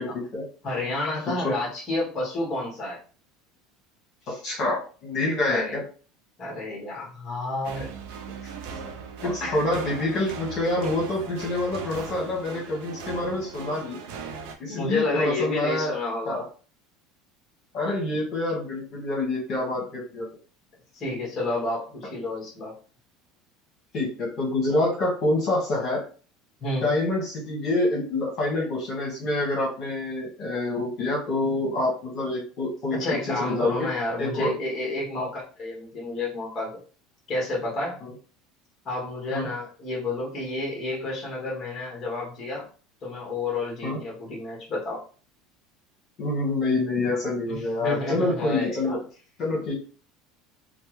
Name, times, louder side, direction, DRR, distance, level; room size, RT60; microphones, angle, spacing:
voice 1, 0.0-0.4 1.4-1.5 4.3-5.8 9.3-14.0 14.6-15.9 16.3-16.4 17.7-20.3 23.9-26.0 26.8-33.0 33.4-33.9 34.2-34.5 35.1-35.3 38.0-38.1 39.3-39.5 43.8-44.0 46.2-49.0 49.4-49.7, left 2 dB, 45° left, -3 dB, 1.3 m, -27 dB
voice 2, 0.6-3.0 5.5-5.8 6.4-7.9 8.4-8.8 9.2-9.6 14.7-16.4 20.9-22.7 26.6-26.9 32.9-36.8 37.3-38.0 38.8-42.7 43.0-45.0 47.5-49.0, left 2 dB, 25° left, -3 dB, 1.2 m, -30 dB
sound 1, 7.6-14.6, right 5 dB, 75° right, 0.5 m, -38 dB
3.2 x 2.0 x 3.0 m, 0.38 s
cardioid pair, 150°, 0 cm